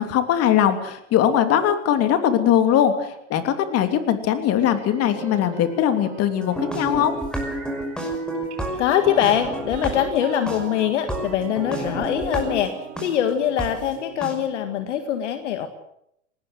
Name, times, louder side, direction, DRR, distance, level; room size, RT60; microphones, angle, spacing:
voice 1, 0.0-7.1, left 10 dB, 40° left, 8 dB, 3.1 m, -20 dB
sound 1, 4.6-8.0 8.5-14.9, right 8 dB, 45° right, 6.4 m, -42 dB
sound 2, 6.4-13.1 13.6-13.7 14.2-14.3, right 1 dB, ahead, 5.7 m, -30 dB
voice 2, 8.8-12.7 13.0-15.7, left 10 dB, 75° left, 8 dB, 1.9 m, -23 dB
20.0 x 18.5 x 7.9 m, 0.76 s
hypercardioid pair, 105°, 36 cm